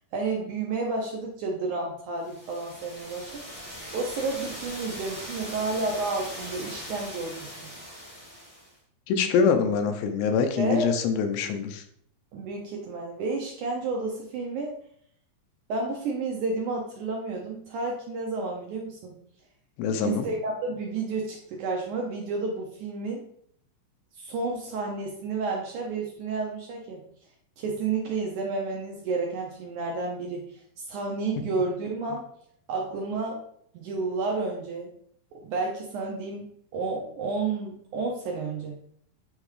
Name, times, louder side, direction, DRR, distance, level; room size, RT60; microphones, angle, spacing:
voice 1, 0.1-3.6 3.9-7.7 10.6-10.9 12.3-14.7 15.7-19.2 20.0-23.3 24.2-27.0 27.6-32.3 32.7-33.4 33.7-34.9 35.3-36.5 36.7-38.8, right 3 dB, 75° right, 0 dB, 1.9 m, -31 dB
sound 1, 2.2-8.7, equal, 35° left, 0.5 m, -40 dB
voice 2, 9.1-11.8 19.8-20.3, left 6 dB, 90° left, 6 dB, 2.7 m, -24 dB
9.1 x 3.4 x 3.2 m, 0.66 s
omnidirectional pair, 4.3 m